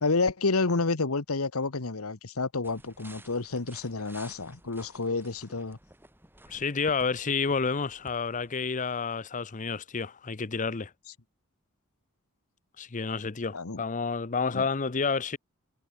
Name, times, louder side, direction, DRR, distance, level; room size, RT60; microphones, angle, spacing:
voice 1, 0.0-5.8 13.5-13.8 14.5-14.6, left 3 dB, 90° left, 1.4 m, -29 dB
sound 1, 2.6-8.5, right 1 dB, 10° right, 5.4 m, -54 dB
voice 2, 6.5-10.9 12.8-15.4, left 5 dB, 35° left, 0.7 m, -30 dB
head